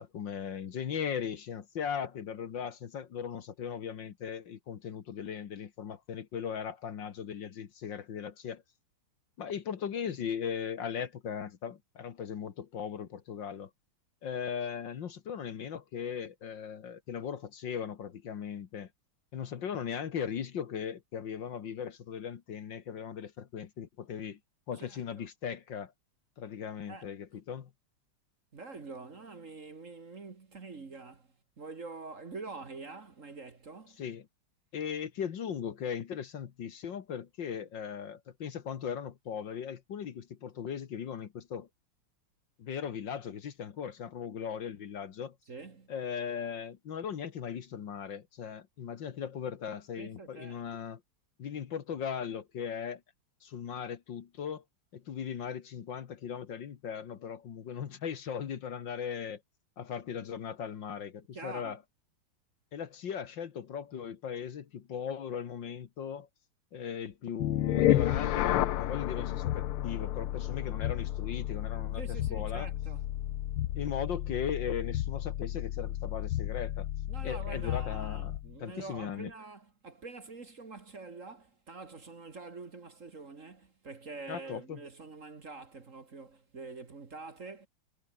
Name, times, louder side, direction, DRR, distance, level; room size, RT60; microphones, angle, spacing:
voice 1, 0.0-8.6 9.4-13.7 14.2-18.9 19.3-24.4 24.7-25.9 26.4-27.7 34.0-34.3 34.7-41.7 42.6-45.4 45.9-51.0 51.4-53.0 53.4-54.6 54.9-59.4 59.8-61.8 62.7-66.3 66.7-72.7 73.8-76.9 77.2-79.3 84.3-84.8, left 7 dB, 60° left, 2.0 m, -38 dB
voice 2, 28.5-31.3 31.6-34.0 45.5-45.9 50.0-50.6 61.3-61.7 72.0-73.0 77.1-87.7, right 3 dB, 40° right, 2.0 m, -46 dB
sound 1, 67.4-78.5, left 13 dB, 85° left, 1.8 m, -32 dB
omnidirectional pair, 2.4 m